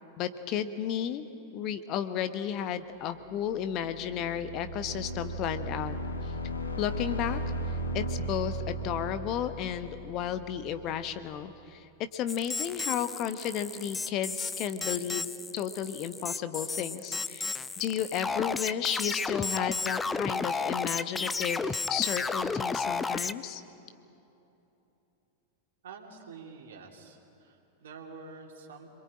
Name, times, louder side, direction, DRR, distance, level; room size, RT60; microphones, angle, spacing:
voice 1, 0.2-1.3 1.5-5.9 6.2-6.3 6.8-7.4 7.7-23.6, left 9 dB, 40° left, 10 dB, 1.1 m, -33 dB
sound 1, 3.3-11.1, right 1 dB, 75° left, 1.9 m, -36 dB
sound 2, 12.3-23.3, left 4 dB, 10° left, 0.7 m, -33 dB
voice 2, 25.8-28.9, right 4 dB, 60° right, 2 dB, 2.9 m, -47 dB
26.0 x 23.0 x 8.8 m, 2.9 s
figure-of-eight pair, 90°, 0 cm